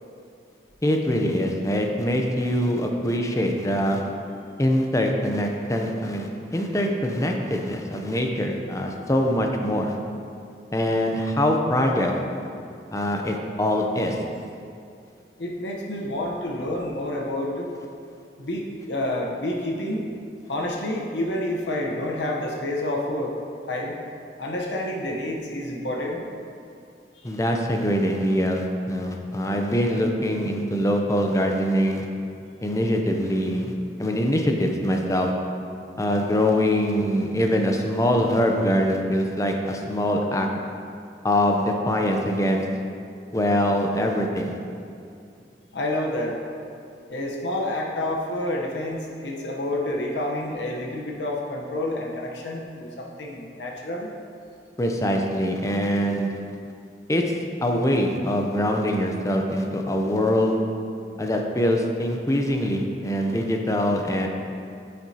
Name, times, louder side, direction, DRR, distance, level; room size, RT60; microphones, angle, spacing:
voice 1, 0.8-4.0 4.6-10.0 10.7-12.2 12.9-14.2 27.2-32.1 32.6-33.7 34.0-35.3 36.0-40.5 41.2-42.6 43.3-44.5 54.8-56.3 57.1-57.3 57.6-60.6 61.2-64.3, equal, 20° left, 2 dB, 0.6 m, -23 dB
voice 2, 15.4-17.7 18.4-20.0 20.5-23.3 23.7-24.0 24.4-26.2 45.7-46.4 47.1-54.1, left 1 dB, 85° left, -1 dB, 1.0 m, -29 dB
9.2 x 7.6 x 2.9 m, 2.5 s
head